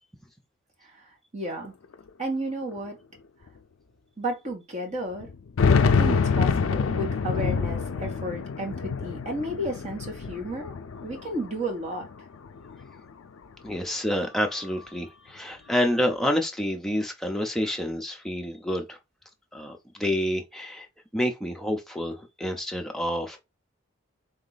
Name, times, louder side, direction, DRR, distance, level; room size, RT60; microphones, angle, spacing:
voice 1, 1.3-1.7 2.2-3.0 4.2-5.3 5.8-10.7 11.0-12.1, right 1 dB, 35° right, 1.4 m, -32 dB
sound 1, 1.6-1.7 1.9-2.0 2.9-3.0 3.5-3.6 5.2-11.6 12.0-13.0, left 5 dB, 80° left, 0.4 m, -26 dB
voice 2, 13.6-19.0 19.5-20.9 21.1-23.4, equal, ahead, 0.6 m, -28 dB
4.0 x 2.9 x 4.0 m
head